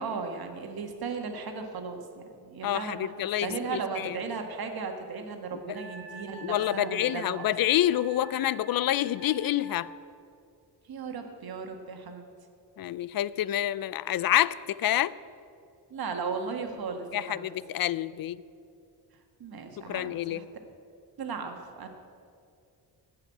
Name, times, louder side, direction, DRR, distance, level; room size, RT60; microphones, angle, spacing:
voice 1, 0.0-7.5 10.9-12.2 15.9-17.5 19.4-20.4 21.2-21.9, right 5 dB, 60° right, 4 dB, 1.6 m, -36 dB
voice 2, 2.6-4.2 5.5-5.8 6.4-9.9 12.8-15.1 17.1-18.4 19.9-20.4, left 12 dB, 60° left, 19 dB, 0.5 m, -28 dB
Wind instrument woodwind instrument, 5.7-10.0, right 1 dB, 25° right, 1.8 m, -47 dB
16.5 x 5.7 x 8.6 m, 2.4 s
cardioid pair, 110°, 41 cm